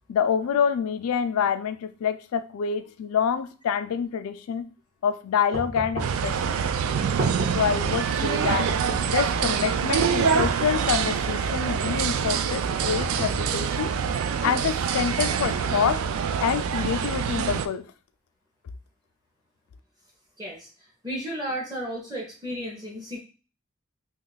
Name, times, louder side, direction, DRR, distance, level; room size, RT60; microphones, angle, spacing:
voice 1, 0.1-4.7 5.0-6.6 7.5-8.8 9.1-14.0 14.4-16.0 16.4-17.9, left 7 dB, 90° left, 0.3 m, -27 dB
sound 1, 5.5-6.3 6.9-7.7 8.4-9.2 10.0-10.7 11.5-12.1 12.8-13.7, right 1 dB, 50° right, 1.0 m, -33 dB
sound 2, 6.0-17.7, right 7 dB, 80° right, 0.3 m, -25 dB
voice 2, 20.4-20.7 21.0-23.2, equal, 20° right, 0.6 m, -33 dB
2.9 x 2.3 x 3.9 m
head